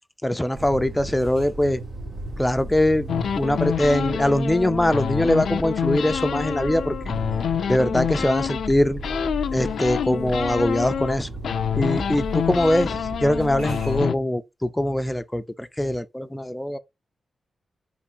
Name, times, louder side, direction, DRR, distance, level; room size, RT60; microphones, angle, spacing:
voice 1, 0.2-1.8 2.4-3.1 3.3-7.0 7.7-9.0 9.5-11.3 11.8-16.8, left 1 dB, 10° left, 0.4 m, -22 dB
sound 1, 0.5-14.0, right 1 dB, 70° right, 1.5 m, -35 dB
sound 2, 3.1-8.7 9.0-11.2 11.4-14.1, left 8 dB, 80° left, 0.4 m, -27 dB
3.6 x 3.0 x 4.4 m
wide cardioid pair, 135°, 0 cm